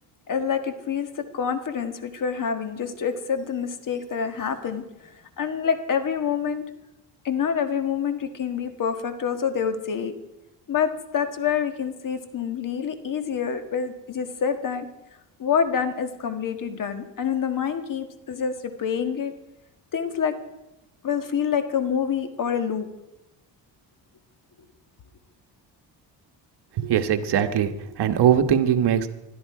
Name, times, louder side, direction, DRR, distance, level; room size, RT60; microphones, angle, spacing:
voice 1, 0.3-6.6 7.2-10.1 10.7-14.9 15.4-19.3 19.9-20.3 21.0-22.9, left 7 dB, 45° left, 8 dB, 1.6 m, -27 dB
voice 2, 26.8-29.1, right 9 dB, 65° right, 8 dB, 1.4 m, -21 dB
20.5 x 13.0 x 4.8 m, 0.91 s
cardioid pair, 125°, 44 cm